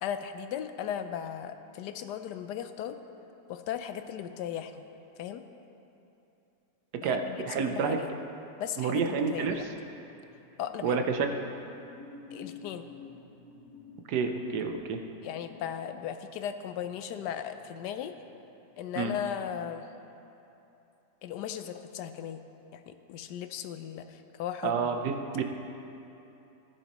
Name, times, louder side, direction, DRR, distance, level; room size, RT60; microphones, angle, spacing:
voice 1, 0.0-3.0 3.5-4.9 5.2-5.4 7.0-8.1 8.6-9.6 10.6-11.0 12.3-12.9 15.2-18.2 18.8-19.9 21.2-22.4 22.7-25.0, left 9 dB, 85° left, 9 dB, 1.2 m, -37 dB
voice 2, 7.0-8.0 8.8-9.6 10.8-11.3 14.1-15.0 19.0-19.1 24.6-25.4, right 5 dB, 75° right, 5 dB, 1.3 m, -29 dB
sound 1, 10.0-18.7 19.1-19.3, left 3 dB, 60° left, 1.5 m, -51 dB
15.0 x 11.0 x 3.0 m, 2.9 s
omnidirectional pair, 1.8 m